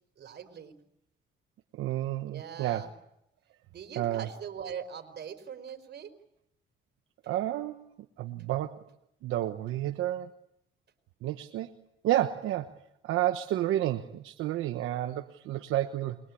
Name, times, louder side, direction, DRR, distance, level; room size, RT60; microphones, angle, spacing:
voice 1, 0.2-0.8 2.3-2.9 3.7-6.1, right 7 dB, 60° right, 8 dB, 4.6 m, -41 dB
voice 2, 1.7-2.9 4.0-4.3 7.3-7.8 8.2-8.8 9.2-10.3 11.2-11.7 12.0-12.8 13.0-16.2, right 13 dB, 90° right, 7 dB, 1.1 m, -30 dB
29.5 x 23.0 x 8.6 m, 0.80 s
cardioid pair, 90°, 20 cm